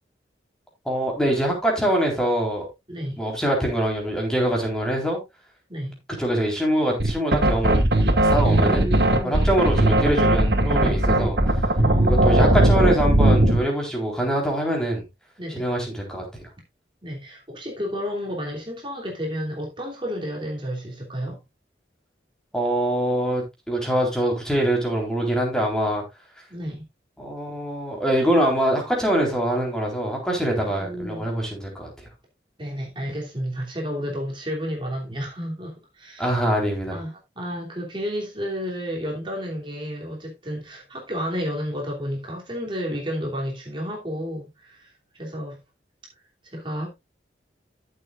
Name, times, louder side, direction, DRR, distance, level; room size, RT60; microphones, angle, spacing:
voice 1, 0.9-2.7 3.2-5.2 6.2-7.8 8.2-8.9 9.2-11.4 12.1-15.0 15.6-16.5 22.5-26.0 27.2-31.9 36.2-37.0, right 1 dB, 5° left, 3.9 m, -24 dB
voice 2, 2.9-3.2 5.7-6.0 8.4-9.4 11.8-12.6 15.4-15.7 17.0-21.4 26.5-26.8 30.6-31.2 32.6-36.4 36.9-45.6 46.4-46.9, equal, 25° right, 2.9 m, -31 dB
sound 1, 7.0-13.6, right 1 dB, 65° right, 2.0 m, -18 dB
14.0 x 7.8 x 2.5 m
head